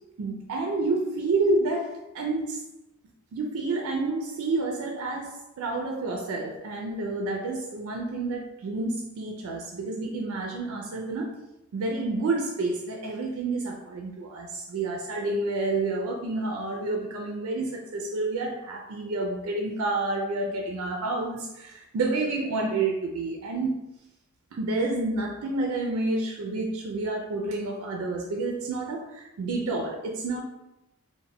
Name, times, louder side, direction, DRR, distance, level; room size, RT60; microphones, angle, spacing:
voice 1, 0.2-2.6 3.3-11.4 11.7-23.8 24.5-30.4, right 2 dB, 75° right, 1 dB, 0.3 m, -29 dB
2.1 x 2.0 x 3.4 m, 0.91 s
head